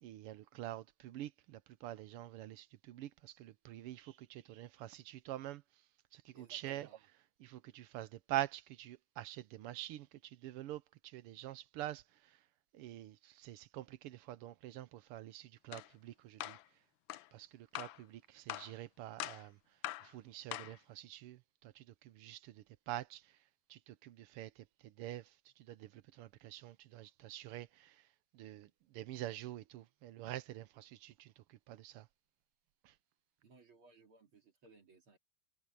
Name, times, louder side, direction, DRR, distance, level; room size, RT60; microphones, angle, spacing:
voice 1, 0.0-5.6 6.1-6.9 7.4-12.0 12.7-16.6 17.3-19.6 20.0-23.2 23.7-25.3 25.7-27.9 28.3-28.7 28.9-31.3 31.7-32.1 32.8-32.9, right 14 dB, 85° right, 1.7 m, -46 dB
voice 2, 6.3-7.0 33.4-35.2, right 3 dB, 70° right, 3.6 m, -63 dB
sound 1, 15.7-15.9 16.4-16.6 17.1-17.3 17.7-18.0 18.5-18.7 19.2-19.5 19.8-20.1 20.5-20.8, left 14 dB, 75° left, 1.3 m, -43 dB
omnidirectional pair, 2.4 m